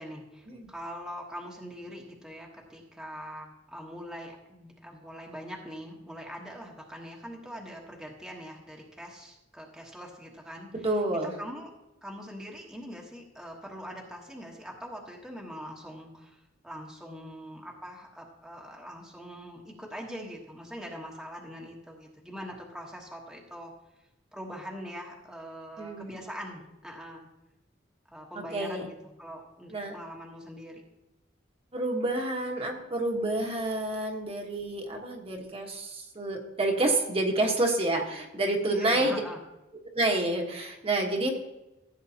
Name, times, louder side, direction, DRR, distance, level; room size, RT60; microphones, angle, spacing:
voice 1, 0.0-10.9 11.2-11.7 12.0-23.7 24.3-27.3 28.1-30.8 38.7-39.4, equal, ahead, -2 dB, 1.2 m, -43 dB
voice 2, 10.8-11.3 25.8-26.1 28.5-28.8 29.7-30.0 31.7-39.2 39.9-41.4, right 2 dB, 30° right, 1 dB, 1.3 m, -28 dB
15.0 x 7.7 x 2.9 m, 0.95 s
head